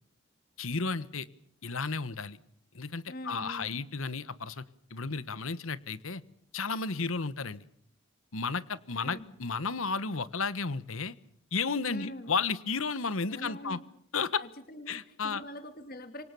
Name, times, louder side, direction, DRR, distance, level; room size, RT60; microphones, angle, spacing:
voice 1, 0.6-1.3 1.6-2.4 2.7-4.6 4.9-6.2 6.5-7.6 8.3-11.1 11.5-13.8 14.1-14.4 14.9-15.4, left 4 dB, 75° left, 16 dB, 1.3 m, -33 dB
voice 2, 3.1-3.8 9.0-9.4 11.9-12.3 13.3-13.8 14.4-16.2, equal, 45° left, 9 dB, 2.6 m, -44 dB
27.5 x 25.0 x 7.1 m, 0.65 s
head